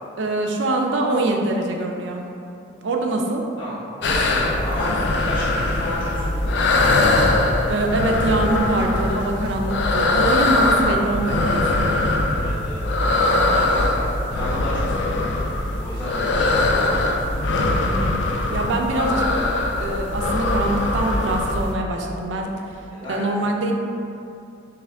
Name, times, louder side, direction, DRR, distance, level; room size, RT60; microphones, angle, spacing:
voice 1, 0.2-2.2 2.8-3.4 7.7-11.9 17.8-18.2 18.5-19.3 19.8-22.5 23.1-23.7, right 2 dB, 75° right, 2 dB, 0.4 m, -23 dB
sound 1, 4.0-21.7, left 2 dB, 65° left, 0.3 m, -21 dB
voice 2, 4.0-6.7 12.4-12.8 13.4-15.3 15.8-17.2 18.9-19.2 22.9-23.2, equal, 25° left, -12 dB, 0.9 m, -32 dB
3.4 x 3.4 x 3.4 m, 2.7 s
head